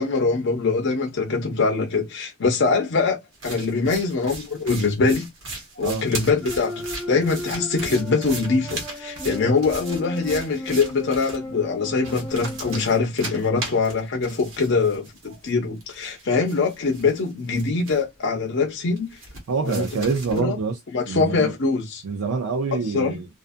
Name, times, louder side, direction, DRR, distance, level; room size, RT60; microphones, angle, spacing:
voice 1, 0.0-3.2 3.4-5.3 5.8-19.2 19.6-19.9 20.3-20.6 20.9-22.0 22.7-23.2, left 4 dB, 55° left, 0.5 m, -23 dB
sound 1, 3.3-11.4 12.0-15.5 15.8-18.2 19.0-20.4, right 2 dB, 65° right, 1.0 m, -37 dB
voice 2, 5.8-6.1 19.5-20.8 21.1-21.5 22.0-23.3, right 4 dB, 85° right, 0.5 m, -26 dB
sound 2, 6.4-12.8, left 1 dB, 5° left, 0.6 m, -35 dB
2.5 x 2.4 x 2.5 m
head